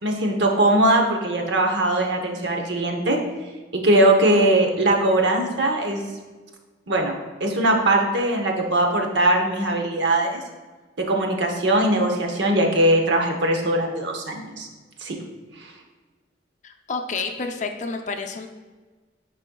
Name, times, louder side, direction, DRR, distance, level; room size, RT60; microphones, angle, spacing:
voice 1, 0.0-3.2 3.7-6.0 6.9-10.4 11.0-14.7 15.0-15.2, right 1 dB, 70° right, 3 dB, 0.8 m, -20 dB
voice 2, 16.6-18.5, left 4 dB, 40° left, 5 dB, 0.4 m, -29 dB
10.0 x 4.1 x 2.3 m, 1.3 s
head